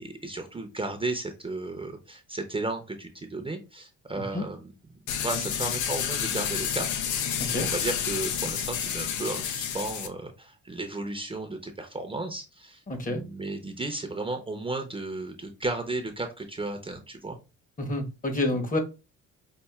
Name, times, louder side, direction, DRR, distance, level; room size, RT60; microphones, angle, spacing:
voice 1, 0.0-4.7 5.2-7.0 7.6-17.4, right 2 dB, 20° right, 0.6 m, -34 dB
sound 1, 5.1-10.1, left 8 dB, 75° left, 0.6 m, -30 dB
voice 2, 12.9-13.2 17.8-18.8, left 1 dB, 25° left, 1.0 m, -28 dB
5.5 x 2.5 x 2.3 m
cardioid pair, 90°, 30 cm